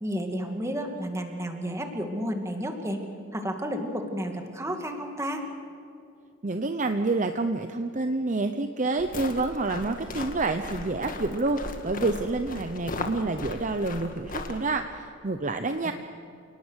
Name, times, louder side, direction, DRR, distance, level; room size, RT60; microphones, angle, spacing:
voice 1, 0.0-3.0 3.3-5.4 15.8-15.9, equal, 15° right, 4 dB, 2.3 m, -31 dB
voice 2, 6.4-15.9, right 3 dB, 40° right, 7 dB, 0.8 m, -28 dB
sound 1, 9.0-14.6, left 2 dB, 40° left, 1.8 m, -37 dB
29.0 x 18.5 x 6.4 m, 2.6 s
head